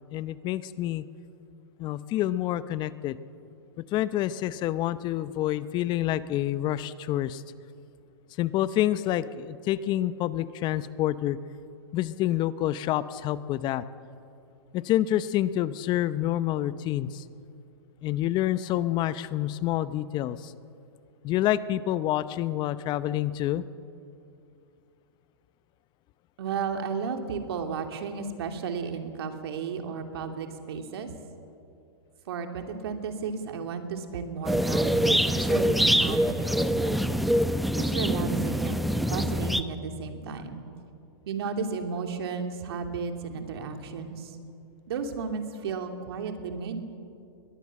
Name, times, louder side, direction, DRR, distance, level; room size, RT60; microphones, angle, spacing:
voice 1, 0.1-1.1 1.8-3.2 3.8-7.4 8.4-11.4 11.9-13.8 14.7-17.2 18.0-20.5 21.2-23.6, left 13 dB, 35° left, 15 dB, 0.7 m, -28 dB
voice 2, 26.4-31.1 32.3-37.0 37.9-38.8 39.1-40.7 41.3-44.4 44.9-46.8, right 5 dB, 70° right, 5 dB, 2.8 m, -33 dB
sound 1, 34.4-39.6, equal, ahead, 0.7 m, -25 dB
22.0 x 19.0 x 7.6 m, 2.6 s
hypercardioid pair, 125°, 14 cm